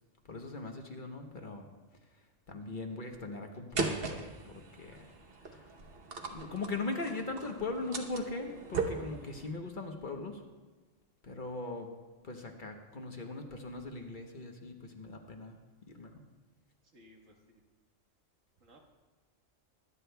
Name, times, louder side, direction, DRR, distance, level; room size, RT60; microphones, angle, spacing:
voice 1, 0.2-1.7 2.5-5.1 5.4-5.7 6.3-10.4 11.2-11.9 12.2-15.6 15.8-16.2, left 3 dB, 45° left, 3 dB, 1.0 m, -40 dB
sound 1, 3.8-9.5, right 4 dB, 50° right, 1.1 m, -39 dB
voice 2, 16.8-17.6 18.6-18.8, equal, 85° right, 1 dB, 1.8 m, -60 dB
23.0 x 9.7 x 2.3 m, 1.2 s
omnidirectional pair, 1.3 m